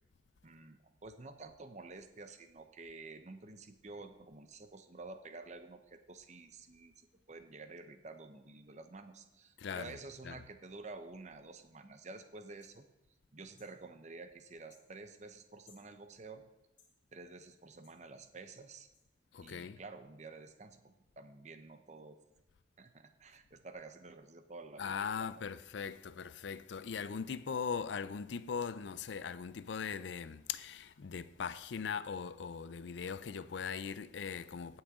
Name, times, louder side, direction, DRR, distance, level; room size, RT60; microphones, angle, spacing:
voice 1, 0.4-6.9 7.3-12.9 13.3-16.5 17.1-18.9 19.4-22.1 22.8-25.3, right 3 dB, 40° right, 0.8 m, -50 dB
voice 2, 9.6-10.0 10.2-10.4 19.3-19.8 24.8-34.8, left 6 dB, 75° left, 0.4 m, -40 dB
sound 1, 12.6-12.8 13.6-13.8 14.7-14.9 15.7-15.9 16.8-16.9 17.8-18.0 18.9-19.0, left 5 dB, 45° left, 3.2 m, -64 dB
17.5 x 6.2 x 3.7 m
head